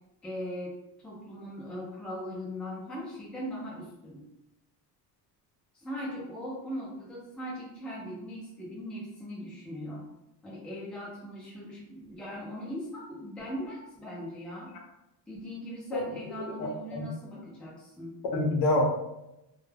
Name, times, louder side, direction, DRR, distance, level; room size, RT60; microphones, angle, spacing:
voice 1, 0.2-0.7 1.0-4.2 5.7-10.1 10.4-14.7 15.3-18.1, equal, 5° left, -6 dB, 0.4 m, -39 dB
voice 2, 16.6-17.1 18.3-18.8, left 2 dB, 70° left, 1 dB, 0.7 m, -27 dB
2.2 x 2.1 x 3.2 m, 0.91 s
cardioid pair, 175°, 40 cm